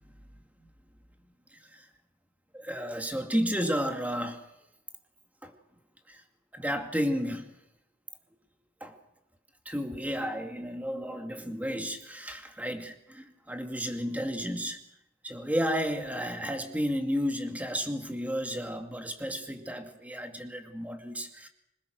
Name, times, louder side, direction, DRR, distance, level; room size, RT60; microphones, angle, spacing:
voice 1, 2.5-4.4 5.4-5.5 6.1-6.2 6.5-7.5 8.8-9.0 9.7-14.8 15.2-21.5, equal, 10° right, 5 dB, 2.3 m, -32 dB
26.5 x 19.5 x 6.4 m, 0.86 s
head